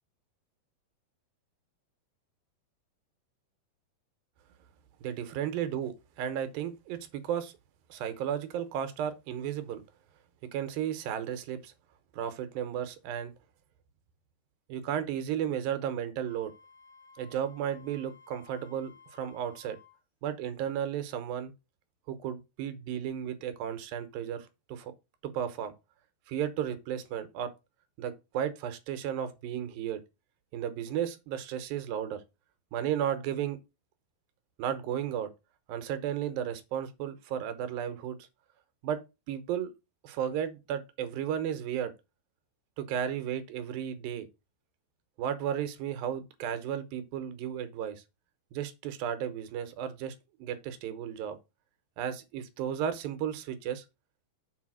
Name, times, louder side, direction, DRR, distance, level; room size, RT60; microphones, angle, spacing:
voice 1, 5.0-7.5 7.9-9.8 10.5-11.7 12.1-13.3 14.7-16.5 17.2-19.8 20.2-21.5 22.1-24.9 25.2-25.7 26.3-27.5 28.0-30.0 30.5-32.2 32.7-33.6 34.6-35.3 35.7-38.2 38.8-39.0 39.3-39.7 40.0-41.9 42.8-44.3 45.2-48.0 48.5-50.1 50.4-51.4 52.0-53.8, right 9 dB, 85° right, 2.8 m, -34 dB
Wind instrument woodwind instrument, 16.2-20.0, left 5 dB, 30° left, 1.1 m, -57 dB
7.1 x 4.2 x 6.1 m
omnidirectional pair, 4.0 m